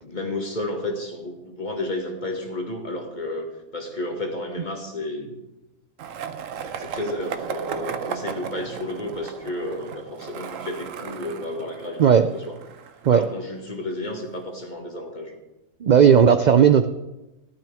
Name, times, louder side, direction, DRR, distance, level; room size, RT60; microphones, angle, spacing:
voice 1, 0.0-3.5 3.7-5.4 6.6-12.6 13.1-15.4, left 1 dB, 35° left, 2 dB, 2.0 m, -32 dB
Skateboard, 6.0-13.9, right 7 dB, 85° right, 1.1 m, -35 dB
voice 2, 15.8-16.9, right 8 dB, 70° right, 10 dB, 0.4 m, -15 dB
15.0 x 12.0 x 3.5 m, 1.0 s
omnidirectional pair, 1.3 m